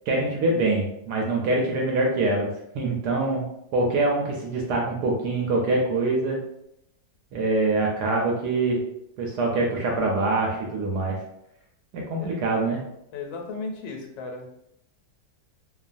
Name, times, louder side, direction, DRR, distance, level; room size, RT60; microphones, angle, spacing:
voice 1, 0.1-3.4 3.7-6.4 7.3-8.8 9.2-11.2 11.9-12.8, right 2 dB, 75° right, 0 dB, 1.0 m, -24 dB
voice 2, 13.1-14.5, left 3 dB, 85° left, 1 dB, 1.4 m, -35 dB
3.1 x 2.2 x 2.5 m, 0.78 s
omnidirectional pair, 2.0 m